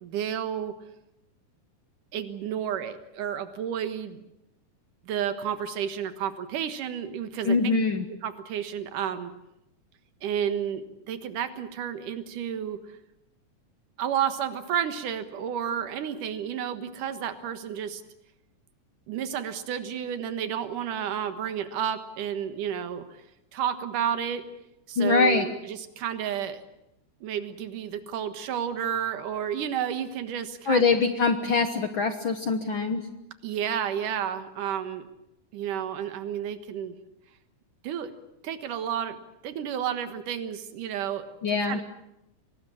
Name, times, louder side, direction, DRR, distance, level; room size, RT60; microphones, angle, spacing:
voice 1, 0.0-0.7 2.1-4.2 5.0-7.7 8.2-9.3 10.2-12.8 14.0-18.0 19.1-23.2 23.5-24.4 24.9-26.6 27.2-30.8 33.4-35.1 35.5-37.0 37.8-38.1 38.4-39.2 39.4-41.3 41.6-41.8, right 9 dB, 85° right, 10 dB, 3.0 m, -31 dB
voice 2, 7.4-8.0 25.0-25.5 30.7-33.0 41.4-41.8, left 4 dB, 60° left, 8 dB, 1.4 m, -23 dB
23.5 x 19.0 x 8.7 m, 0.87 s
omnidirectional pair, 3.6 m